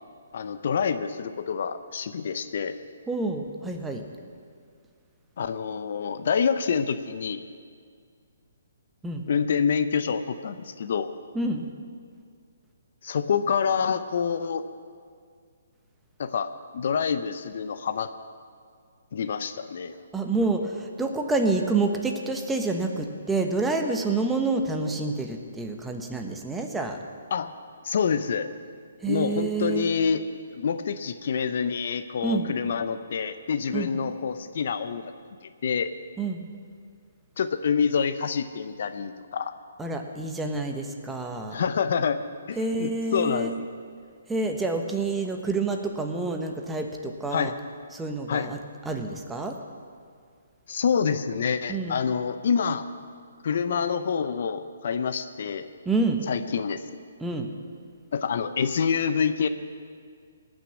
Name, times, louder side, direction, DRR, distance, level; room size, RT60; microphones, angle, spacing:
voice 1, 0.3-2.8 5.4-7.4 9.3-11.1 13.0-14.6 16.2-18.1 19.1-19.9 27.3-27.5 27.8-28.5 29.1-30.3 30.5-35.1 35.4-35.9 37.4-39.5 41.5-42.2 42.5-43.7 47.3-47.5 48.3-48.5 50.7-52.8 53.4-55.6 56.3-56.8 58.1-59.5, left 6 dB, 60° left, 10 dB, 0.7 m, -27 dB
voice 2, 3.1-4.0 9.0-9.2 11.3-11.6 20.1-27.0 29.0-29.9 32.2-32.5 33.7-33.9 36.2-36.4 39.8-41.6 42.6-43.5 44.3-47.5 47.9-48.6 48.9-49.6 51.7-52.0 55.8-56.2 57.2-57.5, right 3 dB, 10° right, 4 dB, 1.1 m, -28 dB
18.5 x 6.4 x 8.4 m, 2.1 s
hypercardioid pair, 145°, 0 cm